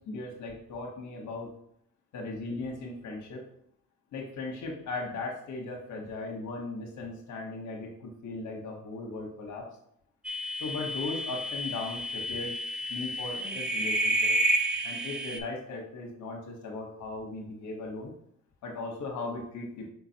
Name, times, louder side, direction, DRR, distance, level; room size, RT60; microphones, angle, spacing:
voice 1, 0.1-1.5 2.1-3.4 4.1-9.7 10.6-12.5 12.9-14.3 14.8-18.1 18.6-19.9, left 3 dB, 75° left, 0 dB, 1.0 m, -37 dB
sound 1, 10.2-15.4, right 1 dB, 5° right, 0.3 m, -30 dB
4.7 x 3.9 x 2.7 m, 0.71 s
cardioid pair, 90°, 30 cm